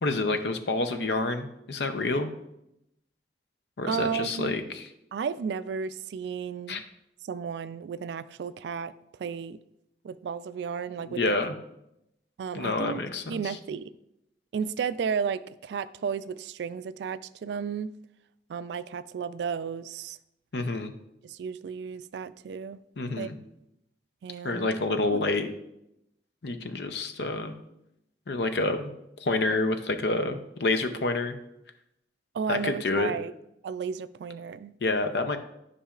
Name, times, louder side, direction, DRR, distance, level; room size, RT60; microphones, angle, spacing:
voice 1, 0.0-2.3 3.8-4.9 6.7-6.8 11.0-11.6 12.5-13.6 20.5-20.9 23.0-23.4 24.4-25.5 26.4-27.5 28.3-28.9 29.2-31.4 32.5-33.1 34.8-35.4, left 2 dB, 70° left, 8 dB, 0.6 m, -28 dB
voice 2, 3.9-4.6 5.1-6.8 7.2-8.9 9.2-9.6 10.0-11.4 12.4-13.0 13.3-13.9 14.5-17.9 18.5-20.2 21.2-22.8 23.2-23.3 24.2-24.7 25.1-25.2 32.3-33.3 33.6-34.7, right 6 dB, 70° right, 15 dB, 0.3 m, -33 dB
10.0 x 5.5 x 2.4 m, 0.83 s
head